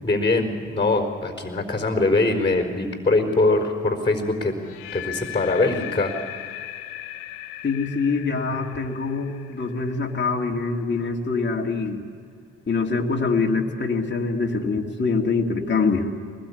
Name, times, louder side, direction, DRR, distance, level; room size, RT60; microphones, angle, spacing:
voice 1, 0.0-4.5 4.9-6.1, left 2 dB, 15° left, 4 dB, 4.3 m, -22 dB
sound 1, 4.6-10.6, left 12 dB, 75° left, 0.9 m, -38 dB
voice 2, 7.6-12.0 12.7-16.1, left 4 dB, 30° left, 0 dB, 2.6 m, -24 dB
22.5 x 20.5 x 8.5 m, 2.2 s
hypercardioid pair, 50°, 36 cm